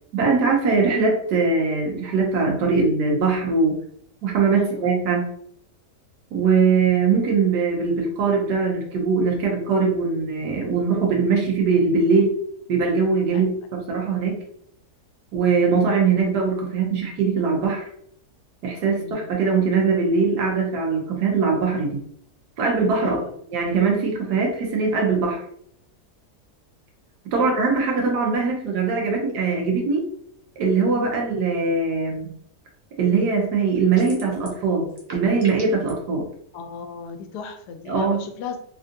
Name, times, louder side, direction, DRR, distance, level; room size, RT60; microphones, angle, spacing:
voice 1, 0.1-3.8 4.2-5.3 6.3-12.3 12.7-14.4 15.3-17.8 18.6-22.0 22.6-23.2 23.5-25.4 27.2-30.0 30.6-32.3 33.0-36.3 37.9-38.2, right 4 dB, 90° right, -1 dB, 1.3 m, -21 dB
voice 2, 4.6-4.9 13.3-13.4 18.8-19.3 23.0-23.3 27.4-27.6 30.9-31.2 36.5-38.6, left 6 dB, 90° left, 6 dB, 1.1 m, -36 dB
sound 1, 34.0-34.6 34.9-35.9, right 2 dB, 40° right, 0.3 m, -40 dB
3.4 x 2.5 x 2.6 m, 0.68 s
omnidirectional pair, 1.7 m